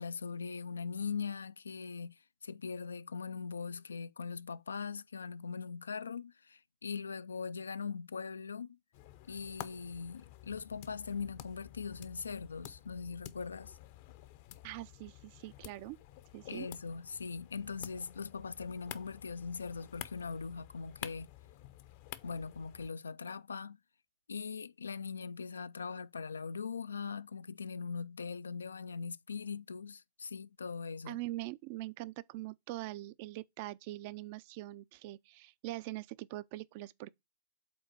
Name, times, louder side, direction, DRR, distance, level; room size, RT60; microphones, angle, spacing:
voice 1, 0.0-8.8 9.3-13.8 16.5-21.3 22.2-23.8 24.3-31.2, left 5 dB, 85° left, 0.3 m, -41 dB
sound 1, 8.9-22.9, left 14 dB, 50° left, 0.6 m, -51 dB
voice 2, 14.6-16.0 16.3-16.7 31.1-37.1, right 17 dB, 50° right, 0.4 m, -43 dB
5.3 x 3.9 x 6.0 m
hypercardioid pair, 110°, 0 cm